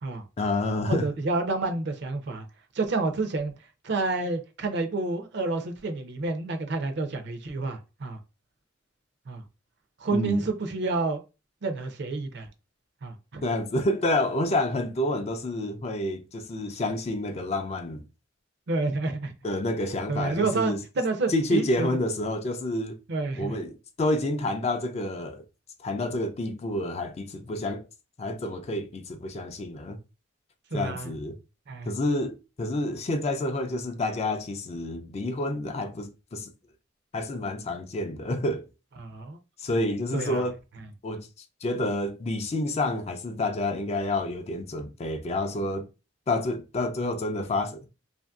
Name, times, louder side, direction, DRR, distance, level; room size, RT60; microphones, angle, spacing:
voice 1, 0.4-1.1 10.1-10.4 13.4-18.0 19.4-20.8 21.3-23.0 23.4-25.4 25.8-27.8 28.2-30.0 30.7-31.4 31.9-36.5 37.1-38.7 39.6-40.6 41.0-41.3 41.6-45.9 46.3-47.9, left 1 dB, 35° left, 0.4 m, -29 dB
voice 2, 0.9-2.4 2.7-3.5 3.8-8.2 9.3-9.4 10.0-11.2 11.6-12.5 13.0-13.4 18.7-19.3 20.1-22.0 23.1-23.5 30.7-31.1 31.7-31.9 39.0-39.4 40.1-40.4, right 3 dB, 60° right, 0.5 m, -29 dB
2.9 x 2.5 x 2.3 m
head